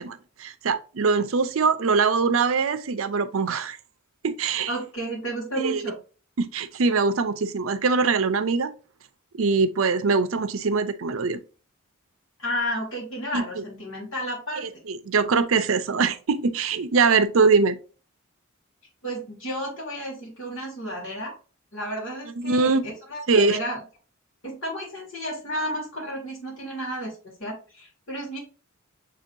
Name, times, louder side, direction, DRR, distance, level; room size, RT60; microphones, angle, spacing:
voice 1, 0.0-3.8 4.2-4.7 5.6-5.9 6.4-8.7 9.3-11.4 13.3-13.4 14.6-17.8 22.4-22.9 23.3-23.6, right 4 dB, 75° right, 0.5 m, -22 dB
voice 2, 4.7-6.0 12.4-14.7 19.0-21.3 21.7-22.8 23.1-23.8 24.4-28.4, equal, 65° left, 2.1 m, -32 dB
6.8 x 2.8 x 2.6 m
head